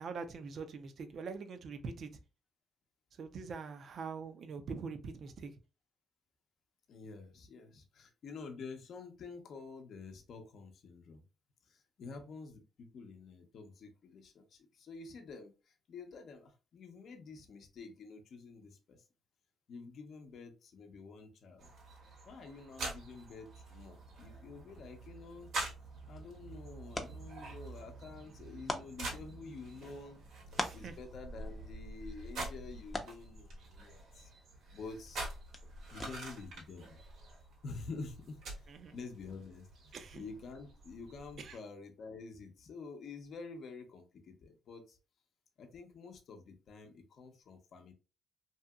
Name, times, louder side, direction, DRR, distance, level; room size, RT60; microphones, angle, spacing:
voice 1, 0.0-2.1 3.2-5.5 30.7-30.9 38.7-39.0 39.9-40.2 41.4-41.6, right 5 dB, 60° right, 0.5 m, -43 dB
voice 2, 6.9-11.2 11.7-19.0 19.7-21.7 22.3-25.5 26.1-30.2 30.7-34.3 34.7-35.2 35.9-37.0 37.6-45.0 45.6-47.9, left 4 dB, 60° left, 0.6 m, -49 dB
sound 1, 21.6-41.5, right 2 dB, 80° right, 1.2 m, -47 dB
sound 2, 25.8-36.5, left 2 dB, 20° left, 0.5 m, -47 dB
2.7 x 2.7 x 2.3 m
cardioid pair, 90°, 0 cm